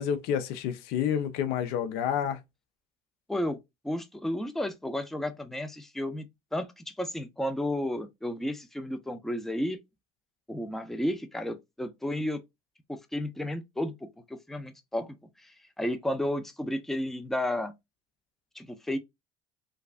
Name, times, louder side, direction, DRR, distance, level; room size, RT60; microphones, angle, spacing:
voice 1, 0.0-2.4, left 9 dB, 70° left, 0.6 m, -29 dB
voice 2, 3.3-3.6 3.8-6.3 6.5-9.8 10.5-12.4 12.9-17.7 18.5-19.0, left 1 dB, ahead, 0.5 m, -32 dB
3.2 x 2.4 x 2.4 m
supercardioid pair, 85°, 16 cm